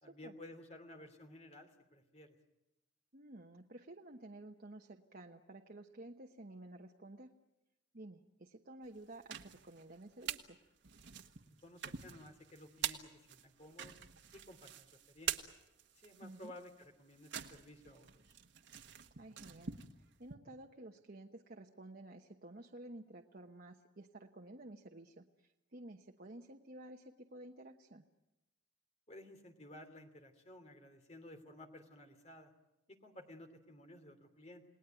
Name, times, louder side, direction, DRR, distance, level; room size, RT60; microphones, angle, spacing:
voice 1, 0.0-2.3 11.4-14.0 14.3-15.4 16.0-18.1 29.1-32.5 32.9-34.6, left 1 dB, 35° left, 6 dB, 2.8 m, -55 dB
voice 2, 3.1-7.3 7.9-10.6 16.2-16.5 19.2-28.0, right 1 dB, 45° right, 2 dB, 1.1 m, -53 dB
sound 1, 9.0-10.5 10.8-20.4, right 9 dB, 60° right, 1.5 m, -45 dB
29.5 x 19.0 x 9.1 m, 0.96 s
head